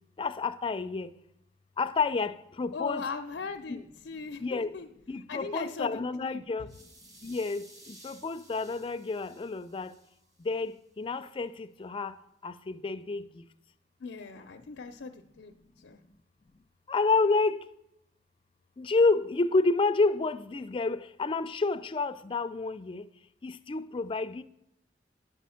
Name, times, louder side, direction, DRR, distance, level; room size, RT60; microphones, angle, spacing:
voice 1, 0.2-1.1 1.8-3.1 3.7-3.8 4.4-4.7 5.1-6.7 7.2-9.9 10.5-12.1 12.4-13.3 16.9-17.6 18.8-23.0 23.4-24.4, left 3 dB, 30° left, 0.4 m, -29 dB
voice 2, 2.7-4.9 5.3-6.5 14.0-16.0, left 4 dB, 90° left, 0.5 m, -39 dB
sound 1, 6.7-10.7, right 1 dB, 20° right, 1.5 m, -56 dB
9.2 x 6.1 x 5.6 m
head